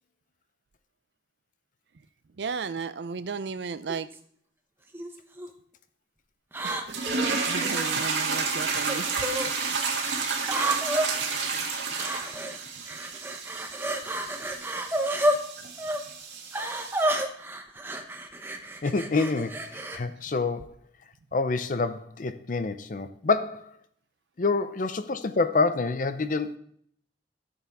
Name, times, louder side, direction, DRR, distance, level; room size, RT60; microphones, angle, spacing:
voice 1, 2.4-4.1 6.6-7.0 7.3-9.1, right 5 dB, 75° right, 0.5 m, -34 dB
sound 1, 3.9-4.2 4.9-5.5 6.5-7.9 8.9-9.5 10.4-11.1 11.9-12.6 12.9-15.4 15.8-16.0 16.5-20.0, right 1 dB, 10° right, 0.8 m, -30 dB
sound 2, 6.9-17.1, right 4 dB, 90° right, 2.0 m, -31 dB
voice 2, 18.8-20.8 21.3-23.7 24.4-26.6, left 3 dB, 45° left, 0.5 m, -27 dB
13.0 x 7.0 x 3.5 m
head